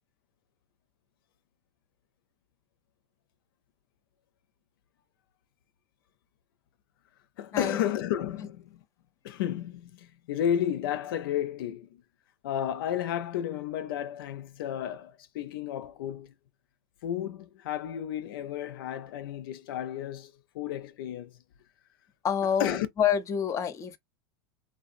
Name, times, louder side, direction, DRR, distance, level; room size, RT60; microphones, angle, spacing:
voice 1, 7.4-8.8 9.2-12.0 12.4-16.3 17.0-21.3 22.6-22.9, left 10 dB, 75° left, 0.4 m, -32 dB
voice 2, 22.2-24.0, left 8 dB, 25° left, 0.5 m, -27 dB
2.6 x 2.2 x 2.5 m
supercardioid pair, 125°, 12 cm